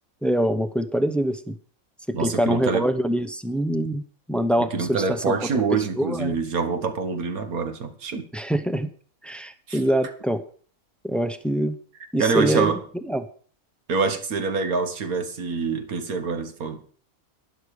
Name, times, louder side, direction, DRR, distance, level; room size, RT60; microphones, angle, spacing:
voice 1, 0.2-1.6 2.1-4.0 4.3-5.3 5.7-6.4 8.3-8.9 9.2-10.4 11.0-11.8 12.1-12.7 13.1-13.3, right 1 dB, ahead, 0.4 m, -24 dB
voice 2, 2.1-2.9 4.6-8.3 9.7-9.8 12.2-12.8 13.9-16.9, right 4 dB, 75° right, 1.9 m, -26 dB
11.5 x 11.0 x 4.9 m
omnidirectional pair, 1.5 m